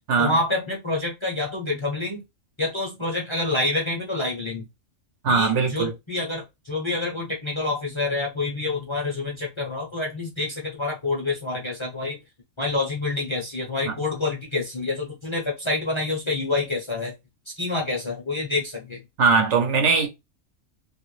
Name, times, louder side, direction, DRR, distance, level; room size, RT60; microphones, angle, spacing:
voice 1, 0.2-2.2 2.6-4.7 5.3-12.2 12.6-17.1 17.5-19.0, left 2 dB, 25° left, 0.7 m, -27 dB
voice 2, 5.2-5.9 13.9-14.0 19.2-20.1, right 5 dB, 65° right, 1.1 m, -20 dB
2.9 x 2.6 x 3.1 m
omnidirectional pair, 1.4 m